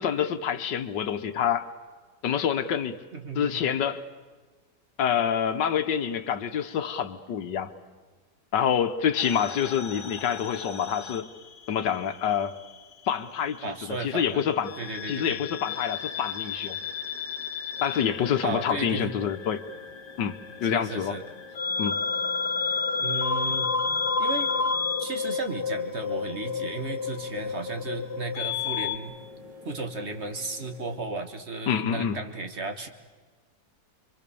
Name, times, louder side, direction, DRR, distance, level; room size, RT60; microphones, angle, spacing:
voice 1, 0.0-1.7 2.2-3.0 3.3-4.0 5.0-7.7 8.5-11.2 11.7-12.6 13.1-14.8 15.1-16.8 17.8-19.6 20.2-21.2 21.8-22.0 31.7-32.2, left 8 dB, 80° left, 1.7 m, -27 dB
voice 2, 3.1-3.6 13.6-14.4 14.8-15.4 18.4-19.1 20.7-21.2 22.7-23.7 24.2-24.5 25.0-29.1 29.6-32.9, right 3 dB, 40° right, 1.7 m, -34 dB
sound 1, 9.2-12.0 12.3-13.5 14.7-29.0, left 5 dB, 65° left, 2.0 m, -31 dB
sound 2, 17.8-30.9, left 3 dB, 85° right, 3.4 m, -48 dB
28.0 x 23.5 x 7.0 m
omnidirectional pair, 1.9 m